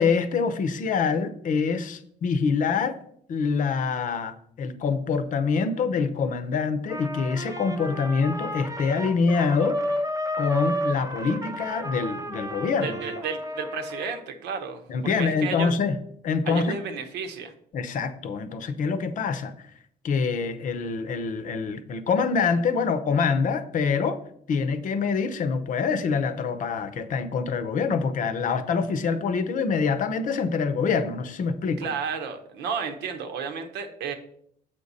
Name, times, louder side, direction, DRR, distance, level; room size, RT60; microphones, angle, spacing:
voice 1, 0.0-3.0 3.3-9.8 10.4-13.0 14.9-16.0 16.2-16.7 17.7-19.5 20.0-24.2 24.5-31.9, left 5 dB, 50° left, 11 dB, 0.7 m, -25 dB
Trumpet, 6.9-14.2, equal, 20° right, 0.8 m, -32 dB
voice 2, 12.8-15.8 16.4-17.5 31.8-34.1, right 6 dB, 85° right, 6 dB, 1.0 m, -32 dB
7.7 x 5.2 x 4.1 m, 0.68 s
cardioid pair, 110°, 17 cm